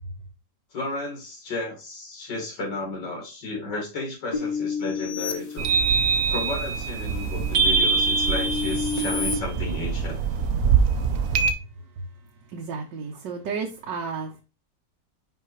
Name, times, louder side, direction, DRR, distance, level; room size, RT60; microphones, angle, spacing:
voice 1, 0.7-5.7 6.3-10.2, left 2 dB, 85° left, -1 dB, 2.5 m, -33 dB
sound 1, 4.3-6.3 6.8-9.3, left 5 dB, 30° left, 0.8 m, -31 dB
sound 2, 5.6-11.5, right 5 dB, 60° right, 1.0 m, -23 dB
voice 2, 12.5-14.4, right 5 dB, 85° right, 1 dB, 1.6 m, -32 dB
5.6 x 5.5 x 3.1 m, 0.31 s
omnidirectional pair, 1.8 m